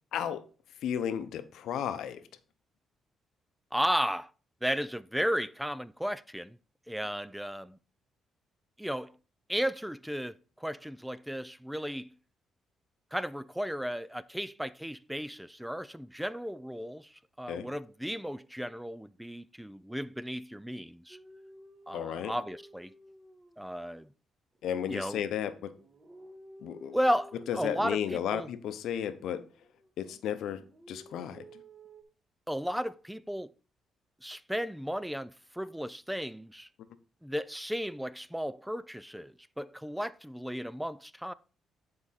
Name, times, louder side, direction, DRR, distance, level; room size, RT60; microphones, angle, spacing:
voice 1, 0.1-0.4 0.8-2.2 17.5-17.7 21.9-22.3 24.6-25.7 26.6-27.0 27.5-29.4 30.0-31.5, left 9 dB, 75° left, 0.7 m, -33 dB
voice 2, 3.7-4.3 4.6-6.6 6.9-7.8 8.8-9.1 9.5-12.1 13.1-21.2 21.9-22.9 23.6-24.1 24.9-25.2 26.9-28.5 32.5-33.5 34.2-36.7 37.2-41.3, equal, 5° right, 0.4 m, -34 dB
sound 1, 21.1-24.0 24.5-28.8 29.2-30.2 30.5-32.0, right 1 dB, 30° right, 1.7 m, -54 dB
9.8 x 4.8 x 4.1 m
cardioid pair, 90°, 0 cm